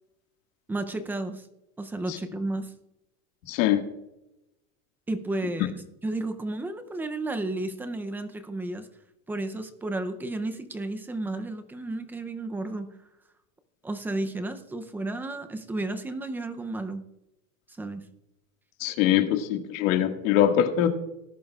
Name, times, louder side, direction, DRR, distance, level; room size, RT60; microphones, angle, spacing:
voice 1, 0.7-1.4 1.8-2.7 5.1-5.7 6.0-8.9 9.3-12.9 13.8-17.0 17.8-18.1, right 2 dB, 5° right, 8 dB, 0.5 m, -32 dB
voice 2, 3.5-3.8 5.6-5.7 18.8-20.9, left 11 dB, 70° left, 5 dB, 1.9 m, -23 dB
19.0 x 10.5 x 2.4 m, 0.90 s
supercardioid pair, 165°, 41 cm